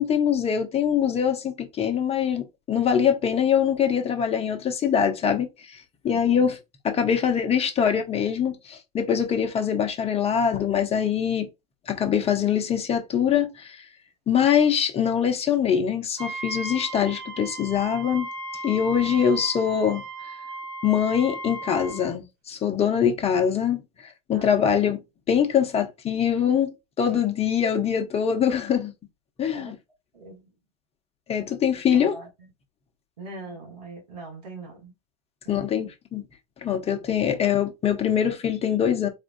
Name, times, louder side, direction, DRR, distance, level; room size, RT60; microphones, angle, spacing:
voice 1, 0.0-5.8 6.0-6.6 6.8-11.5 11.9-13.8 14.3-18.3 18.6-20.0 20.8-23.8 24.3-25.0 25.3-28.9 29.4-29.8 31.3-32.2 35.5-36.2 36.6-39.1, left 8 dB, 30° left, 0.9 m, -23 dB
voice 2, 6.1-6.4 24.3-24.7 27.1-27.3 29.5-29.7 30.1-30.5 31.9-32.5 33.2-34.9 35.4-35.9, right 2 dB, 85° right, 1.5 m, -42 dB
Wind instrument woodwind instrument, 16.2-22.1, right 2 dB, 55° right, 1.4 m, -36 dB
4.3 x 2.4 x 2.6 m
hypercardioid pair, 80°, 20 cm